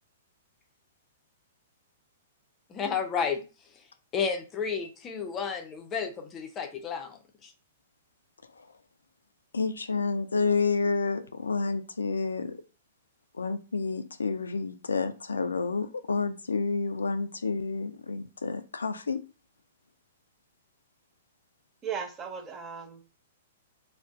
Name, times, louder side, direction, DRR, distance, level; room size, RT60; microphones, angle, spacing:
voice 1, 2.7-3.4 4.1-7.2 7.4-7.5, left 6 dB, 25° left, 0.6 m, -31 dB
voice 2, 9.5-12.5 13.4-19.2, left 4 dB, 85° left, 0.3 m, -29 dB
voice 3, 21.8-23.2, right 7 dB, 25° right, 0.7 m, -37 dB
2.5 x 2.1 x 3.5 m
hypercardioid pair, 115°, 0 cm